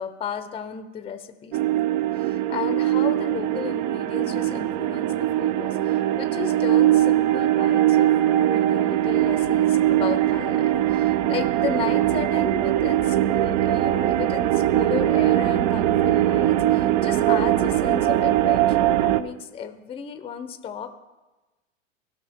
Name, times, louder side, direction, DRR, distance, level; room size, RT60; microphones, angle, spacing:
voice 1, 0.0-1.6 2.2-20.9, left 8 dB, 15° left, 9 dB, 0.6 m, -34 dB
sound 1, 1.5-19.2, right 13 dB, 40° right, 0.5 m, -21 dB
16.5 x 6.1 x 3.6 m, 1.1 s
hypercardioid pair, 100°, 39 cm